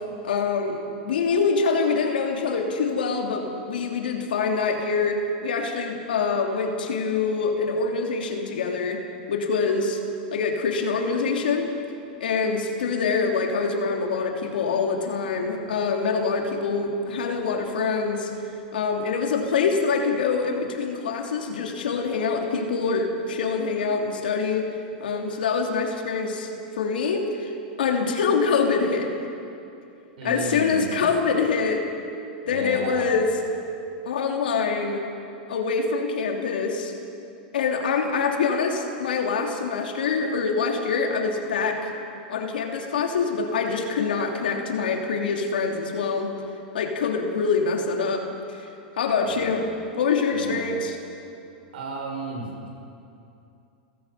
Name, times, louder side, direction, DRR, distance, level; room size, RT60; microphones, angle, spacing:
voice 1, 0.2-9.0 9.3-10.0 10.3-11.7 12.2-18.3 18.7-24.7 25.0-26.5 26.8-27.5 27.8-29.1 30.2-31.8 32.5-33.3 34.0-35.0 35.5-36.9 37.5-41.9 42.3-46.3 46.7-48.7 49.0-51.0, left 5 dB, 85° left, 2 dB, 3.1 m, -25 dB
voice 2, 30.2-31.1 32.4-33.1 49.2-49.6 50.3-50.7 51.7-52.7, right 2 dB, 75° right, 1 dB, 5.8 m, -34 dB
30.0 x 15.0 x 5.8 m, 2.6 s
hypercardioid pair, 110°, 5 cm